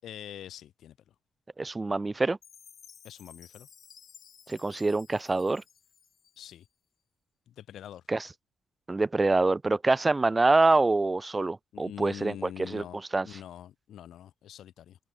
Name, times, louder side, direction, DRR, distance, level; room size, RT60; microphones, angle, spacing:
voice 1, 0.0-0.9 3.0-3.7 6.4-6.6 7.5-8.0 11.7-15.0, left 11 dB, 70° left, 5.3 m, -44 dB
voice 2, 1.6-2.4 4.5-5.6 8.1-8.3 8.9-12.8 13.1-13.4, right 3 dB, 20° right, 0.4 m, -25 dB
Chime, 2.4-6.7, left 7 dB, 55° left, 4.9 m, -55 dB
open air
cardioid pair, 90°, 0 cm